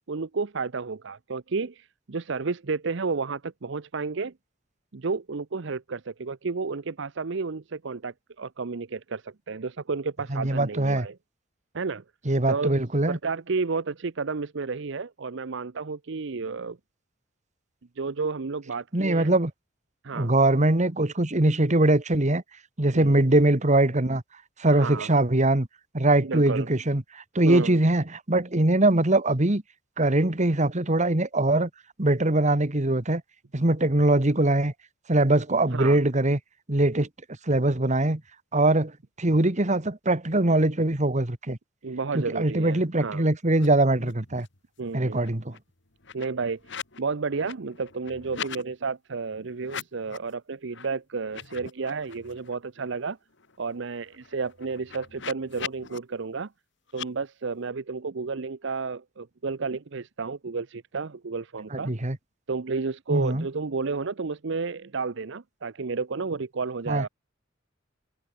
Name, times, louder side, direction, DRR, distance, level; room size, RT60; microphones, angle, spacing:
voice 1, 0.1-4.3 4.9-11.2 11.7-12.0 12.5-12.8 13.1-16.8 18.0-19.3 20.0-20.3 22.9-23.2 24.7-25.1 26.2-26.7 27.4-27.8 35.7-36.0 41.8-43.2 44.8-45.2 46.1-46.6 47.0-53.2 53.6-56.5 56.9-61.9 62.5-67.1, right 4 dB, 65° right, 0.7 m, -31 dB
voice 2, 10.3-11.1 12.2-13.2 18.9-19.5 20.1-22.4 22.8-24.2 24.6-25.7 25.9-29.6 30.0-31.7 32.0-33.2 33.5-34.7 35.1-36.4 36.7-37.1 37.5-38.2 38.5-38.9 39.2-41.6 42.1-44.5 44.9-45.5 61.7-62.2 63.1-63.4 66.9-67.0, right 2 dB, 40° right, 1.8 m, -22 dB
sound 1, 43.5-43.7 43.9-44.6 44.9-47.0 47.3-48.6 49.6-50.3 50.7-50.9 51.2-52.5 52.9-53.0 53.3-56.0 56.9-57.1, left 7 dB, 65° left, 2.7 m, -41 dB
head